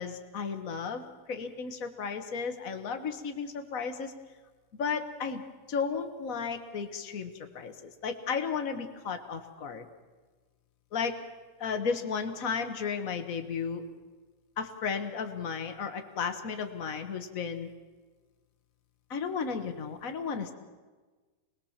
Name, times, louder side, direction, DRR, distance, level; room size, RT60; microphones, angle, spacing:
voice 1, 0.0-4.1 4.7-5.4 5.7-9.8 10.9-11.1 11.6-13.8 14.6-17.7 19.1-20.5, left 5 dB, 65° left, 6 dB, 0.8 m, -34 dB
25.5 x 20.5 x 7.3 m, 1.3 s
omnidirectional pair, 3.7 m